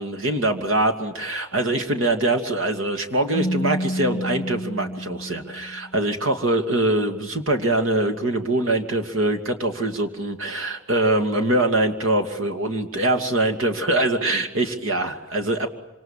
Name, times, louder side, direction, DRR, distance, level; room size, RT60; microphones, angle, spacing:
voice 1, 0.0-15.7, right 1 dB, 70° right, 5 dB, 2.6 m, -23 dB
Keyboard (musical), 3.3-6.1, equal, 30° left, 1.5 m, -29 dB
26.5 x 26.5 x 7.5 m, 1.1 s
head